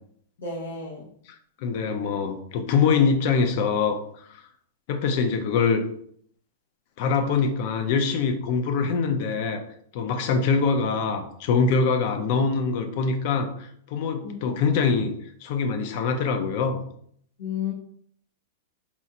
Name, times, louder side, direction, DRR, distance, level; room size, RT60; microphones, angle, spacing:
voice 1, 0.4-1.1 14.2-14.4 17.4-17.7, left 6 dB, 90° left, -3 dB, 1.0 m, -32 dB
voice 2, 1.6-4.3 4.9-5.8 7.0-9.6 9.9-15.1 15.4-16.8, left 5 dB, 40° left, 7 dB, 0.4 m, -24 dB
4.2 x 2.4 x 2.8 m, 0.64 s
supercardioid pair, 170°, 0 cm